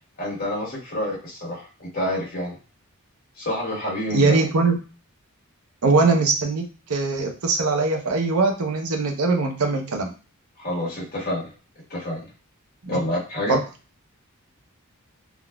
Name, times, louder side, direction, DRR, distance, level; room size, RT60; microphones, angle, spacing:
voice 1, 0.2-2.6 3.4-4.4 10.6-11.5 11.9-12.3 12.9-13.6, left 1 dB, 45° left, -4 dB, 1.3 m, -28 dB
voice 2, 4.1-4.8 5.8-10.1 12.8-13.0 13.5-13.6, right 3 dB, 90° right, 4 dB, 0.7 m, -21 dB
3.7 x 2.4 x 2.2 m, 0.34 s
head